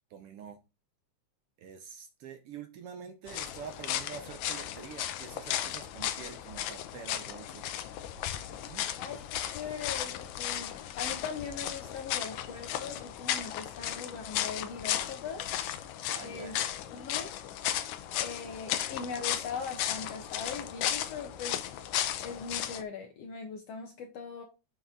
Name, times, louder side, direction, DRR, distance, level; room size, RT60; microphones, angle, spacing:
voice 1, 0.1-0.6 1.6-7.7 8.6-8.9 16.1-16.7, right 7 dB, 65° right, 1.5 m, -46 dB
sound 1, 3.3-22.8, left 11 dB, 85° left, 2.1 m, -35 dB
voice 2, 9.0-15.6 16.2-16.6 16.9-17.3 18.1-21.6 22.2-24.4, left 5 dB, 65° left, 2.0 m, -40 dB
6.9 x 5.9 x 3.8 m
omnidirectional pair, 3.3 m